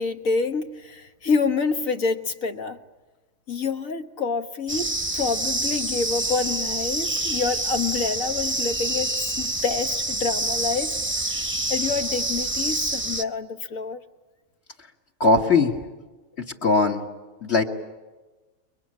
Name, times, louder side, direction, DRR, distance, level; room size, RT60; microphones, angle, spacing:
voice 1, 0.0-2.8 3.5-11.5 11.7-14.0, left 4 dB, 75° left, 1.8 m, -27 dB
sound 1, 4.7-13.2, right 2 dB, 10° right, 0.8 m, -27 dB
voice 2, 15.2-15.7 16.4-17.0 17.4-17.6, left 3 dB, 50° left, 2.5 m, -19 dB
29.0 x 23.0 x 8.9 m
omnidirectional pair, 1.4 m